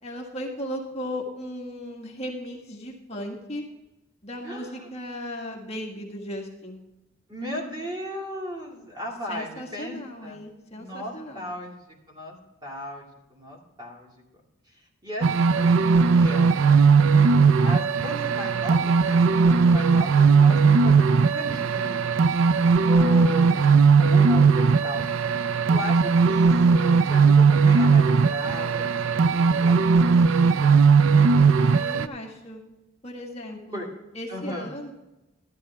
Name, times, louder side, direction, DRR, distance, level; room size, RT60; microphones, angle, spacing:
voice 1, 0.0-3.6 4.2-6.8 9.3-11.6 20.4-20.8 23.0-23.6 31.6-32.6 33.0-34.9, equal, 30° left, -1 dB, 1.7 m, -37 dB
voice 2, 4.4-4.8 7.3-10.4 10.7-11.8 12.1-14.1 15.0-17.2 17.6-22.0 22.9-25.0 25.7-31.2 33.7-33.9 34.3-34.7, left 1 dB, 20° right, -1 dB, 2.4 m, -36 dB
sound one, 15.2-32.1, right 5 dB, 85° right, 0.5 m, -18 dB
13.0 x 11.5 x 3.5 m, 0.99 s
head